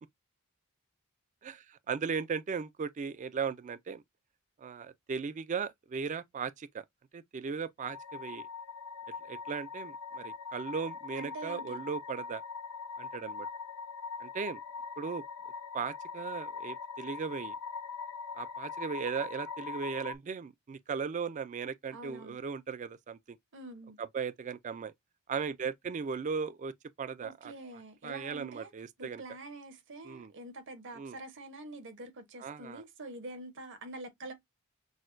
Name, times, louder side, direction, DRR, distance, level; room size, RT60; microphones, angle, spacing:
voice 1, 1.4-4.0 4.6-6.8 7.1-8.4 9.2-12.4 13.0-13.5 14.2-14.6 15.0-15.2 15.7-17.5 18.3-23.4 24.0-24.9 25.3-27.5 28.0-29.2 30.0-30.3 31.0-31.2 32.4-32.8, right 6 dB, 35° right, 0.3 m, -37 dB
sound 1, 7.8-20.1, left 5 dB, 80° left, 0.6 m, -42 dB
voice 2, 11.1-11.8 21.9-22.4 23.5-24.0 27.2-28.7 29.0-34.3, right 2 dB, 55° right, 1.0 m, -46 dB
6.1 x 2.1 x 2.5 m
head